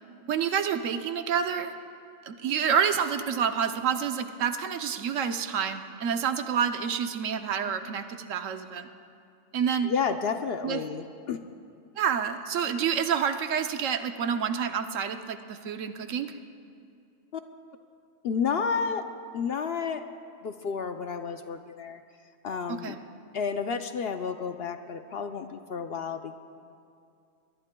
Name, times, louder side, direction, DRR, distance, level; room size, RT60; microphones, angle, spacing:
voice 1, 0.3-1.7 2.2-8.9 9.5-9.9 10.6-10.8 12.0-16.3 22.7-23.0, right 7 dB, 75° right, 8 dB, 1.1 m, -28 dB
voice 2, 9.8-11.5 17.3-17.4 18.2-19.0 19.3-20.0 20.4-22.0 22.4-23.0 23.3-26.3, left 6 dB, 60° left, 7 dB, 0.7 m, -31 dB
22.5 x 21.5 x 2.2 m, 2.5 s
omnidirectional pair, 1.4 m